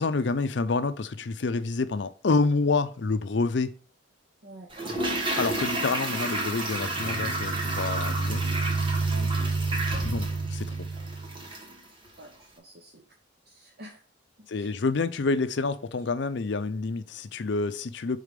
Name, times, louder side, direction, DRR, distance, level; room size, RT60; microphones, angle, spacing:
voice 1, 0.0-3.7 5.4-8.4 10.0-10.7 14.5-18.2, left 3 dB, 60° left, 0.5 m, -28 dB
Toilet flush, 4.7-11.8 12.1-12.2, right 1 dB, 25° right, 1.1 m, -32 dB
sound 1, 6.8-11.4, right 3 dB, 85° right, 0.6 m, -30 dB
voice 2, 12.2-13.0 13.5-14.0 14.4-14.7, right 1 dB, 50° right, 0.7 m, -47 dB
5.0 x 4.1 x 5.1 m
head